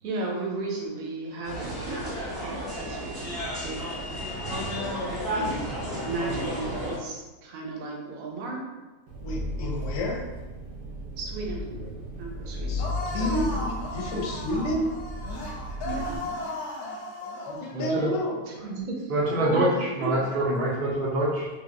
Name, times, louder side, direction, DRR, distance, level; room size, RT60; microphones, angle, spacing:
voice 1, 0.0-3.3 3.6-3.8 4.8-5.6 6.0-8.6 11.2-11.6 12.2-12.8 13.2-13.5 15.8-16.2 18.5-19.0 19.4-19.7 20.0-20.1, right 3 dB, 70° right, -1 dB, 1.1 m, -34 dB
sound 1, 1.4-7.0, equal, 15° right, 1.0 m, -32 dB
voice 2, 4.4-4.7 11.7-11.9 12.3-12.5 14.0-14.1 15.8-16.0 17.5-18.2 19.1-21.5, right 1 dB, 55° right, -6 dB, 0.6 m, -27 dB
Engine, 9.1-16.2, left 1 dB, 90° right, 1.3 m, -35 dB
voice 3, 9.2-10.2 12.7-12.8 13.1-14.9 17.3-18.5, left 1 dB, 65° left, 0 dB, 0.9 m, -30 dB
sound 2, 12.8-17.7, left 1 dB, 90° left, 1.1 m, -36 dB
3.3 x 2.7 x 2.5 m, 1.2 s
omnidirectional pair, 1.6 m